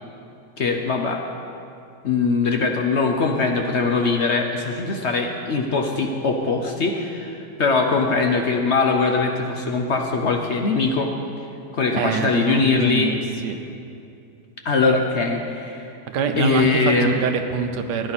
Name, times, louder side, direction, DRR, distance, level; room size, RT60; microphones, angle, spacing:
voice 1, 0.6-1.2 2.0-11.1 11.7-13.1 14.6-15.9 16.4-17.2, left 4 dB, 55° left, 3 dB, 0.9 m, -21 dB
voice 2, 11.9-13.6 16.1-16.7 17.0-18.1, right 6 dB, 85° right, 6 dB, 1.4 m, -25 dB
16.0 x 10.0 x 4.2 m, 2.6 s
omnidirectional pair, 1.8 m